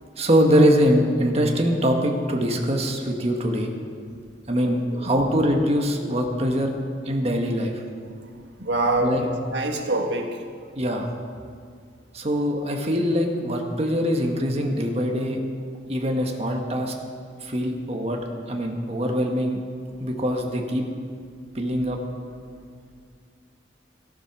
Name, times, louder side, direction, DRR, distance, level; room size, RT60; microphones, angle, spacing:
voice 1, 0.2-3.7 4.5-6.7 7.0-7.8 9.0-9.2 10.7-11.1 12.1-15.4 15.9-16.9 17.4-18.2 18.5-19.6 20.0-20.8 21.5-22.0, equal, 35° right, 2 dB, 1.5 m, -23 dB
voice 2, 4.9-5.2 8.1-8.3 8.6-10.4, right 2 dB, 65° right, 3 dB, 1.7 m, -26 dB
15.0 x 13.0 x 6.0 m, 2.1 s
head